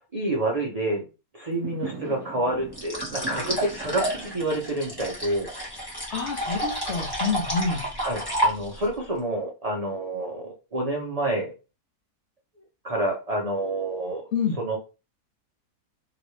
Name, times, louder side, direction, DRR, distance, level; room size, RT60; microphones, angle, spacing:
voice 1, 0.1-1.0 1.3-5.5 8.0-11.5 12.8-14.3 14.6-14.8, right 1 dB, 70° right, 0 dB, 0.3 m, -28 dB
Fireworks, 1.5-6.7, right 5 dB, 15° right, 1.3 m, -41 dB
sound 1, 2.7-8.9, equal, 15° left, 1.1 m, -30 dB
voice 2, 6.1-7.8 14.3-14.6, left 5 dB, 50° left, 0 dB, 1.1 m, -27 dB
3.0 x 2.9 x 3.1 m, 0.31 s
omnidirectional pair, 1.6 m